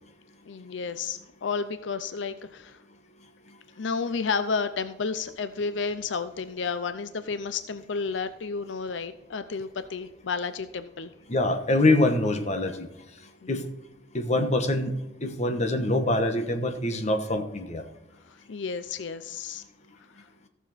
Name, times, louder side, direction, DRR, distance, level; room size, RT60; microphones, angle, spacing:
voice 1, 0.5-2.8 3.8-11.1 13.4-13.6 18.3-19.6, left 5 dB, 80° left, 11 dB, 0.6 m, -31 dB
voice 2, 11.3-12.9 13.5-13.6 14.1-14.9 15.2-17.8, left 2 dB, 40° left, 6 dB, 1.2 m, -24 dB
15.0 x 7.0 x 4.2 m, 0.95 s
head